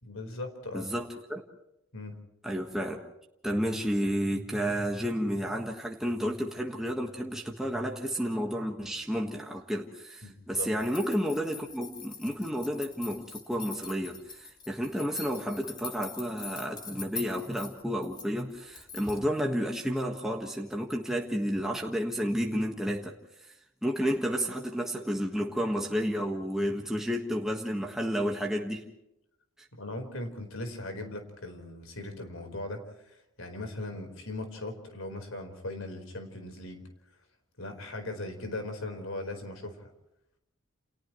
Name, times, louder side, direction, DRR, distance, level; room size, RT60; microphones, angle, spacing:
voice 1, 0.0-0.9 1.9-2.2 10.2-10.7 29.7-36.9 37.6-39.9, left 2 dB, 85° left, 5 dB, 4.4 m, -39 dB
voice 2, 0.7-1.4 2.4-3.0 3.4-23.1 23.4-23.5 23.8-28.9, equal, ahead, 0 dB, 1.5 m, -31 dB
sound 1, 10.8-19.3, left 4 dB, 20° left, 2.2 m, -44 dB
29.5 x 29.5 x 3.1 m, 0.85 s
head